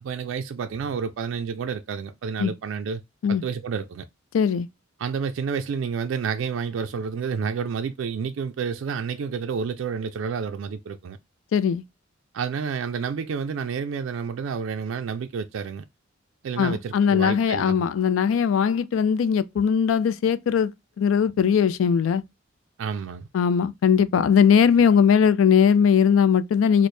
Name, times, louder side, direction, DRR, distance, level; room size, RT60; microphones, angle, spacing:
voice 1, 0.0-3.0 3.3-4.0 5.0-11.2 12.3-15.8 16.4-17.8 22.8-23.3, right 6 dB, 80° right, 0.3 m, -30 dB
voice 2, 4.3-4.7 11.5-11.8 16.6-20.7 21.0-22.2 23.3-26.9, left 7 dB, 90° left, 0.3 m, -20 dB
3.2 x 2.0 x 4.2 m
head